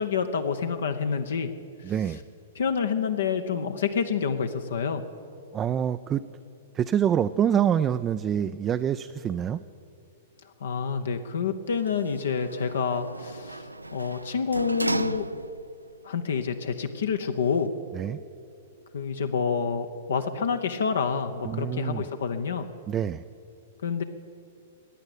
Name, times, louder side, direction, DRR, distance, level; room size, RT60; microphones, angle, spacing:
voice 1, 0.0-1.5 2.6-5.0 10.6-15.3 16.0-17.7 18.9-22.7 23.8-24.0, left 6 dB, 70° left, 7 dB, 0.8 m, -28 dB
voice 2, 1.8-2.2 5.5-6.2 6.7-9.6 17.9-18.2 21.4-22.0 22.9-23.2, right 9 dB, 25° right, 11 dB, 0.4 m, -26 dB
Sliding door, 11.7-15.8 16.2-16.3, right 2 dB, 90° right, 0.4 m, -35 dB
15.0 x 9.9 x 8.7 m, 2.6 s
figure-of-eight pair, 105°, 0 cm